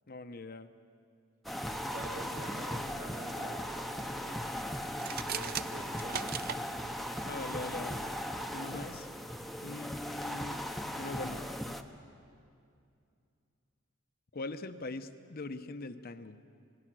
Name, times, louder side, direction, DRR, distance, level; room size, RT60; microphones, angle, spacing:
voice 1, 0.1-0.7 7.2-8.0 8.5-9.1 9.6-10.6 11.0-11.5 14.3-16.4, left 2 dB, 45° left, 10 dB, 0.8 m, -41 dB
sound 1, 1.4-11.8, equal, ahead, 0.8 m, -38 dB
voice 2, 1.9-4.4 5.2-6.4, right 1 dB, 80° right, -1 dB, 3.7 m, -47 dB
sound 2, 4.9-6.6, right 10 dB, 45° right, 0.5 m, -38 dB
26.0 x 19.5 x 6.2 m, 2.5 s
head